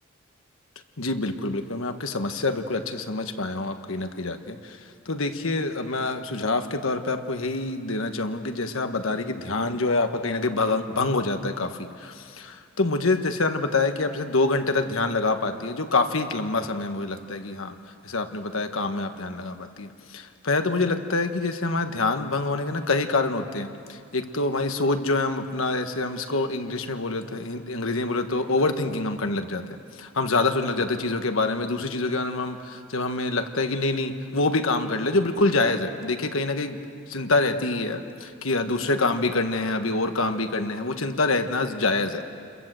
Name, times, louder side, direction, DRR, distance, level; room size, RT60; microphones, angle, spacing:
voice 1, 1.0-17.7 18.0-29.6 29.9-36.8 37.1-42.3, left 3 dB, 70° left, 7 dB, 1.4 m, -26 dB
29.0 x 22.0 x 7.7 m, 2.3 s
head